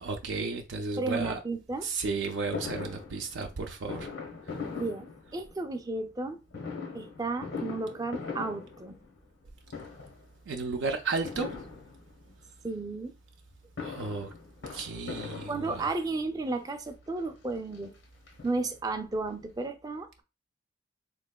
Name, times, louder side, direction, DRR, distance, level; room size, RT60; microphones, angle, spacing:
voice 1, 0.0-1.4 1.8-4.1 4.5-4.6 10.5-11.6 13.8-14.3 14.7-15.9, right 3 dB, 85° right, 0.4 m, -33 dB
voice 2, 1.0-1.9 4.7-6.4 6.9-9.0 12.6-13.1 15.5-17.9 18.4-20.2, right 3 dB, 20° right, 0.4 m, -33 dB
Fireworks, 2.5-5.7 6.5-9.4 9.7-10.3 11.2-12.3 13.5-16.1 16.9-17.0 17.3-17.4 17.7-19.0 19.3-19.4 19.6-19.7, left 5 dB, 85° left, 0.9 m, -41 dB
3.5 x 3.1 x 2.2 m
head